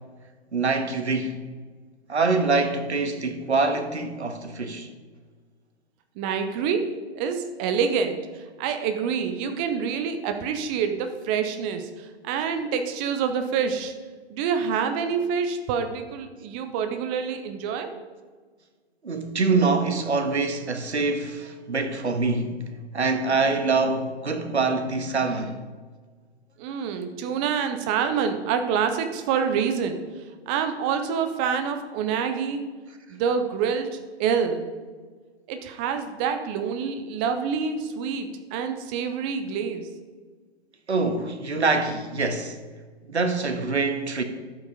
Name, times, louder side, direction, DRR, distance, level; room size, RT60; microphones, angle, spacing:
voice 1, 0.5-1.3 2.1-4.9 19.0-22.5 22.9-25.6 40.9-42.6 43.1-44.2, right 3 dB, 80° right, 1.8 m, -25 dB
voice 2, 6.2-6.9 7.1-13.9 14.3-17.9 26.6-32.6 33.1-34.7 35.5-39.9, right 6 dB, 10° right, 0.4 m, -27 dB
11.5 x 8.3 x 5.1 m
figure-of-eight pair, 130°, 33 cm